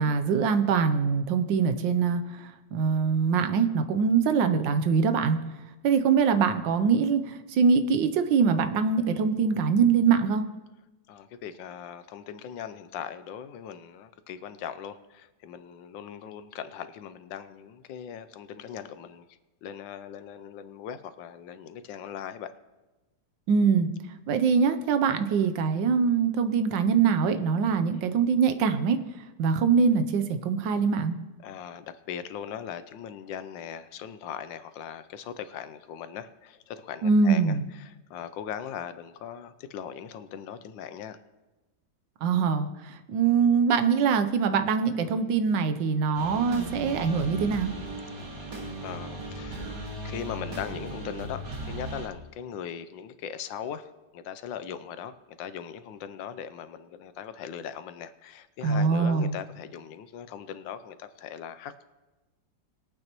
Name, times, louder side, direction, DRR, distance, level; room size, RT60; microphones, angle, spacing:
voice 1, 0.0-5.4 5.8-10.4 23.5-23.9 24.3-29.0 29.4-31.1 37.0-37.6 42.2-47.7 58.6-59.4, right 6 dB, 80° right, 9 dB, 1.4 m, -23 dB
voice 2, 11.1-19.2 19.6-22.5 31.4-41.2 48.8-49.7 49.9-61.9, left 8 dB, 80° left, 12 dB, 1.4 m, -39 dB
sound 1, 46.1-52.1, right 2 dB, 65° right, 2.4 m, -37 dB
21.5 x 8.8 x 3.0 m, 1.1 s
omnidirectional pair, 2.0 m